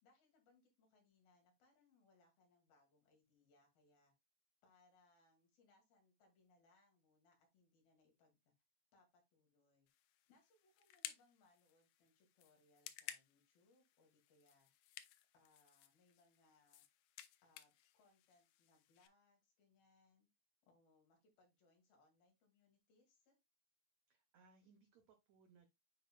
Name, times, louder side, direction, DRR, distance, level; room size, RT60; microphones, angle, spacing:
voice 1, 0.0-4.1 4.6-8.5 8.9-9.9 10.3-14.7 15.3-16.9 17.4-20.3 20.7-23.4, left 3 dB, 70° left, 4.1 m, -75 dB
sound 1, 9.9-19.1, left 13 dB, 90° left, 1.9 m, -57 dB
voice 2, 24.1-25.7, right 5 dB, 90° right, 1.5 m, -69 dB
9.5 x 4.6 x 2.3 m
omnidirectional pair, 4.4 m